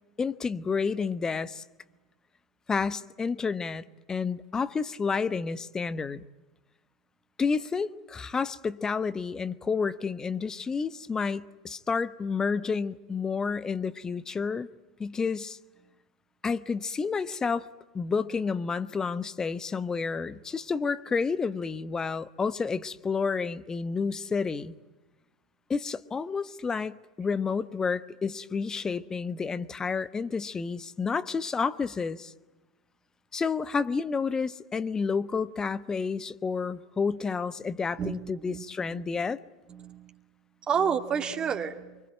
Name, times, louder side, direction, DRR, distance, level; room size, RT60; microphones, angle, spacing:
voice 1, 0.2-1.6 2.7-6.2 7.4-14.7 15.0-15.6 16.4-17.7 17.9-24.7 25.7-32.3 33.3-39.4, left 5 dB, 20° left, 1.1 m, -30 dB
voice 2, 38.0-39.0 39.7-40.2 40.6-42.0, right 7 dB, 30° right, 2.2 m, -31 dB
26.0 x 24.5 x 9.1 m
figure-of-eight pair, 80°, 3 cm